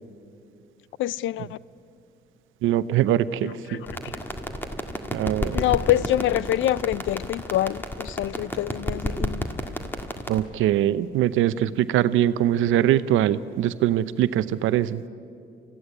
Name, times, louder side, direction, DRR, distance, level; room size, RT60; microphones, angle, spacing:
voice 1, 1.0-1.6 3.4-4.1 5.5-9.5, left 14 dB, 75° left, 0.5 m, -26 dB
voice 2, 2.6-3.8 5.1-5.6 10.3-15.0, right 12 dB, 90° right, 0.7 m, -22 dB
sound 1, 3.9-10.4, left 1 dB, 10° left, 1.8 m, -32 dB
24.0 x 15.5 x 10.0 m
cardioid pair, 90°, 20 cm